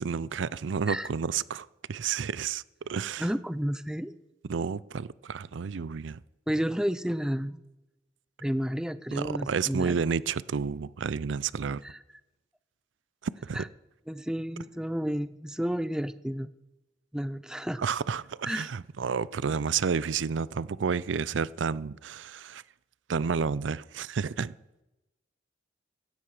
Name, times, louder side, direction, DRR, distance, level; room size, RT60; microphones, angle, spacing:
voice 1, 0.0-3.3 4.5-6.2 9.1-11.8 13.4-13.6 17.8-22.6 23.1-24.5, right 6 dB, 80° right, 0.5 m, -30 dB
voice 2, 3.2-4.1 6.5-7.6 8.4-10.0 11.8-12.0 13.5-13.7 14.1-16.5 17.1-17.8 18.4-18.7, equal, 5° right, 0.5 m, -31 dB
16.5 x 13.0 x 4.9 m
head